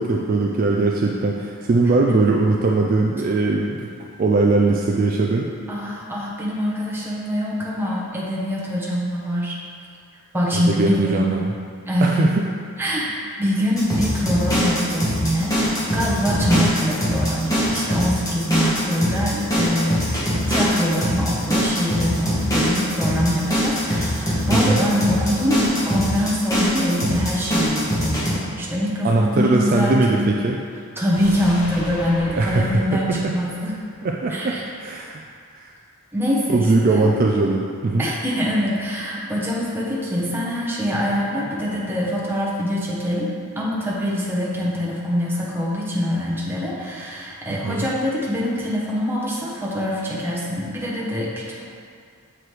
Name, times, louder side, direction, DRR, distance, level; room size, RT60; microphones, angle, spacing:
voice 1, 0.0-3.9 4.2-5.5 10.5-11.5 12.0-12.4 16.4-16.7 24.5-24.8 29.0-30.6 32.4-33.3 34.0-35.2 35.5-35.7 36.5-38.1 47.5-47.9, right 3 dB, 40° right, -1 dB, 0.3 m, -20 dB
voice 2, 5.7-9.6 10.3-11.3 11.9-12.2 12.8-30.3 31.0-33.7 34.3-34.6 36.1-37.1 38.0-43.3 43.5-51.3, equal, 10° right, -5 dB, 0.9 m, -24 dB
sound 1, 13.8-28.3, equal, 15° left, 1.2 m, -22 dB
sound 2, 31.1-34.3 34.6-34.7, equal, 60° left, 1.5 m, -37 dB
7.4 x 4.8 x 3.2 m, 2.2 s
head